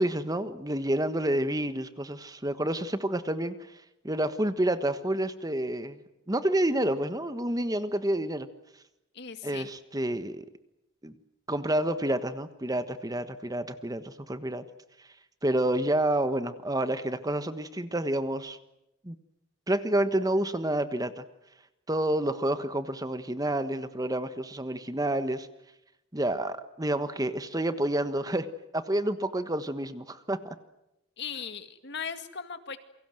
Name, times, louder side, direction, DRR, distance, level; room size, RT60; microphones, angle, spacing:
voice 1, 0.0-3.5 4.0-6.0 6.3-8.5 9.4-10.5 11.0-11.1 11.5-14.6 15.4-18.6 19.0-19.2 19.7-21.2 21.9-25.5 26.1-28.5 28.7-30.5, right 1 dB, 20° right, 11 dB, 1.3 m, -29 dB
voice 2, 9.1-9.7 31.2-32.8, left 6 dB, 55° left, 9 dB, 2.1 m, -38 dB
28.5 x 24.0 x 7.8 m, 0.87 s
head